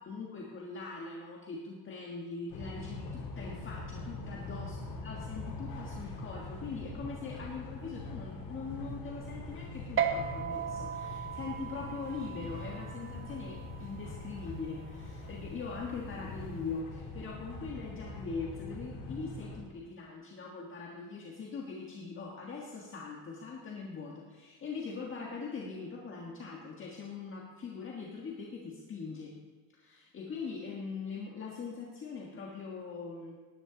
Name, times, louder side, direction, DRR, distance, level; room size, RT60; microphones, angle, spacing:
voice 1, 0.0-29.4 29.7-33.3, left 4 dB, 30° left, -2 dB, 1.6 m, -42 dB
sound 1, 2.5-19.6, left 2 dB, 75° left, 3.1 m, -43 dB
sound 2, 10.0-16.8, right 8 dB, 35° right, 0.8 m, -38 dB
18.5 x 9.9 x 4.0 m, 1.3 s
cardioid pair, 145°, 39 cm